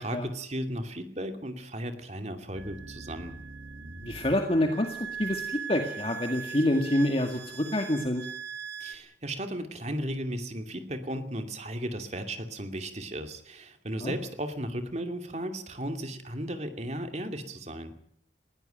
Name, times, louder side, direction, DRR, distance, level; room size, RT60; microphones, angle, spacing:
voice 1, 0.0-3.3 8.8-17.9, right 1 dB, 40° right, 6 dB, 2.6 m, -35 dB
sound 1, 2.6-9.0, right 6 dB, 80° right, 2.0 m, -40 dB
voice 2, 4.0-8.3 14.0-14.1, left 1 dB, 30° left, 4 dB, 2.0 m, -27 dB
20.5 x 16.5 x 9.2 m, 0.65 s
head